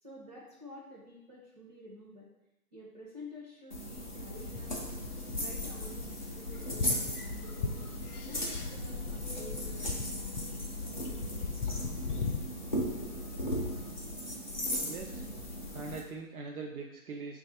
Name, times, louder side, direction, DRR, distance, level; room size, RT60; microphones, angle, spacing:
voice 1, 0.0-2.3 2.7-4.7 5.3-7.9 8.2-10.7, left 1 dB, 30° right, -8 dB, 0.5 m, -50 dB
sound 1, 3.7-16.0, equal, 35° left, 0.4 m, -37 dB
sound 2, 4.4-12.4, left 5 dB, 85° left, 0.6 m, -39 dB
voice 2, 14.8-15.2 15.7-17.4, right 4 dB, 75° right, 0 dB, 0.6 m, -42 dB
3.1 x 2.4 x 4.1 m, 0.90 s
hypercardioid pair, 160°, 44 cm